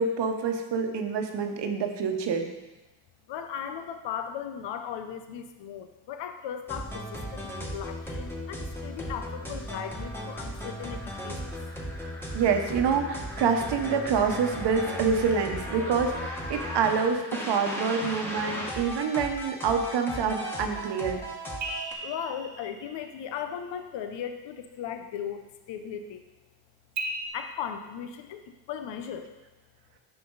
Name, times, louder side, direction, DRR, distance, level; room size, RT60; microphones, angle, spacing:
voice 1, 0.0-2.5 12.3-21.2, right 5 dB, 65° right, 5 dB, 1.1 m, -27 dB
voice 2, 3.3-7.5 7.7-11.5 22.0-26.2 27.3-29.3, left 8 dB, 75° left, 7 dB, 0.8 m, -37 dB
sound 1, 6.7-21.9, equal, 5° left, 1.7 m, -36 dB
sound 2, 21.6-23.6 27.0-27.3, right 2 dB, 40° right, 1.2 m, -38 dB
8.8 x 5.9 x 4.0 m, 1.1 s
cardioid pair, 95°, 44 cm